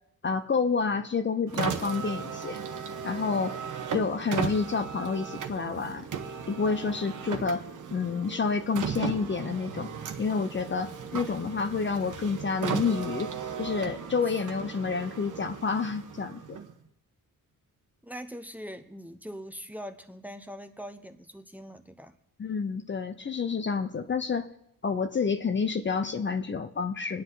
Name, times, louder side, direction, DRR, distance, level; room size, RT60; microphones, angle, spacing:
voice 1, 0.2-2.6 3.0-3.6 3.9-6.1 6.5-7.6 7.9-9.9 10.2-16.6 22.4-24.5 24.8-27.2, left 5 dB, 35° left, 8 dB, 0.8 m, -29 dB
Car, 1.5-16.9, right 7 dB, 60° right, 1.3 m, -36 dB
voice 2, 18.0-22.1, equal, 5° right, 7 dB, 0.9 m, -42 dB
26.0 x 9.6 x 4.0 m, 0.77 s
cardioid pair, 130°, 35 cm